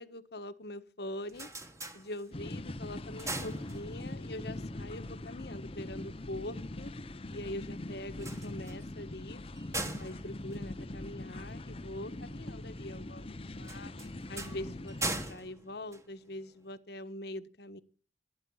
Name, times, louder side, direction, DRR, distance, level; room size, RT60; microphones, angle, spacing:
voice 1, 0.0-1.5 1.9-6.9 7.3-9.4 10.0-13.9 14.3-17.8, left 1 dB, 60° left, 1.4 m, -43 dB
sound 1, 1.0-2.6 3.0-4.3 8.1-11.5 13.6-16.7, right 2 dB, 15° right, 1.8 m, -41 dB
sound 2, 2.3-15.3, left 1 dB, 30° left, 0.7 m, -42 dB
24.0 x 9.8 x 5.6 m
head